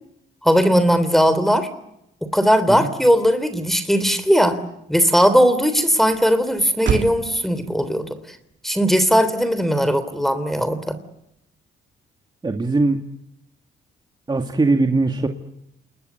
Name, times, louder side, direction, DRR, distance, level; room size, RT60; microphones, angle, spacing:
voice 1, 0.4-1.7 2.2-4.6 4.9-8.1 8.6-11.0, equal, ahead, 12 dB, 3.3 m, -18 dB
Motor vehicle (road), 4.8-11.4, right 8 dB, 65° right, 2.4 m, -34 dB
voice 2, 12.4-13.0 14.3-15.3, right 3 dB, 20° right, 4 dB, 2.2 m, -20 dB
28.5 x 21.0 x 8.2 m, 0.81 s
cardioid pair, 90°, 20 cm